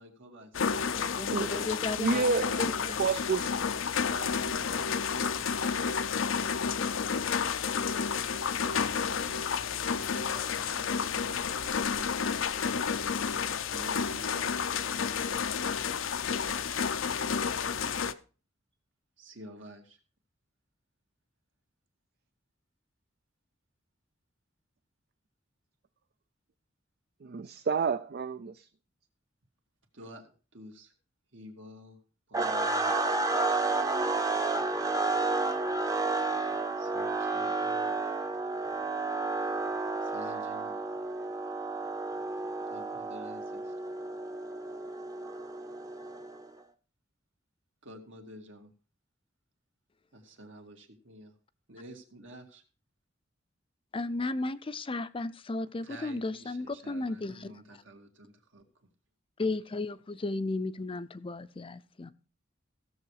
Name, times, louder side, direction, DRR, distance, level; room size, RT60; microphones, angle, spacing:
voice 1, 0.0-0.9 2.1-3.0 4.0-5.4 8.4-11.4 11.9-12.8 13.7-14.6 19.2-20.0 29.9-30.9 31.3-32.0 32.3-33.1 36.8-38.1 40.0-40.7 42.7-43.7 47.8-48.7 50.1-51.3 51.7-52.6 55.8-58.6, equal, 70° right, 4 dB, 2.2 m, -50 dB
sound 1, 0.5-18.1, left 6 dB, 90° left, 0.7 m, -31 dB
voice 2, 1.0-3.0 53.9-57.5 59.4-62.1, left 2 dB, 25° left, 13 dB, 0.5 m, -34 dB
voice 3, 2.0-2.5 2.8-3.6 27.2-28.7, right 4 dB, 55° right, 11 dB, 0.5 m, -29 dB
sound 2, 32.3-46.4, right 3 dB, 20° right, 0.8 m, -31 dB
15.5 x 7.0 x 4.8 m, 0.37 s
head